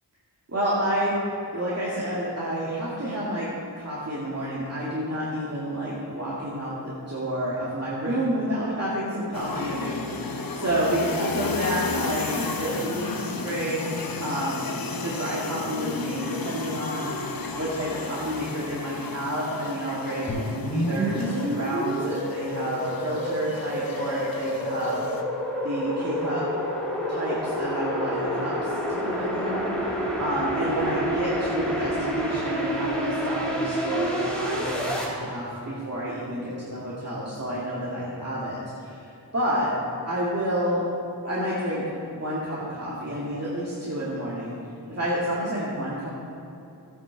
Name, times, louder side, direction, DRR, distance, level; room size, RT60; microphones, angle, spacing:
voice 1, 0.5-1.2 1.5-3.5 3.7-14.7 15.0-17.1 17.6-25.0 25.6-26.5 27.1-39.7 40.1-40.8 41.2-41.8 42.2-44.6 44.9-46.1, equal, 35° right, -7 dB, 2.0 m, -29 dB
sound 1, 9.3-25.2, left 3 dB, 55° left, 1.0 m, -33 dB
sound 2, 20.3-35.0, equal, ahead, 3.1 m, -28 dB
14.0 x 9.0 x 4.6 m, 2.8 s
wide cardioid pair, 100°, 41 cm